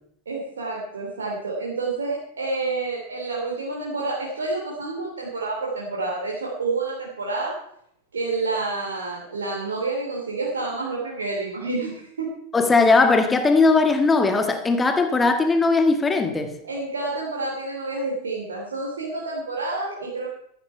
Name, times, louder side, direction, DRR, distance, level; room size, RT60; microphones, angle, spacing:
voice 1, 0.3-7.5 8.1-12.3 16.6-20.3, right 3 dB, 70° right, 3.0 m, -29 dB
voice 2, 12.5-16.6, left 3 dB, 15° left, 1.6 m, -19 dB
14.0 x 12.0 x 4.6 m
figure-of-eight pair, 90°, 0 cm